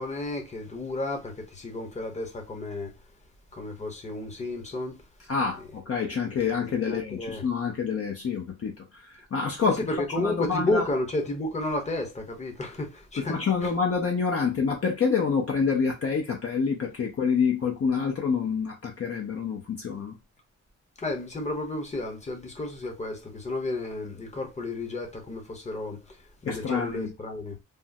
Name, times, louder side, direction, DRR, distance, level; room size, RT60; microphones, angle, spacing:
voice 1, 0.0-2.9 3.5-5.0 6.6-7.5 9.7-13.7 21.0-27.6, left 2 dB, 20° left, 0.9 m, -32 dB
voice 2, 5.3-9.8 10.2-10.8 13.2-20.1 26.5-27.1, left 5 dB, 45° left, 0.6 m, -27 dB
3.5 x 2.1 x 2.6 m
cardioid pair, 115°, 31 cm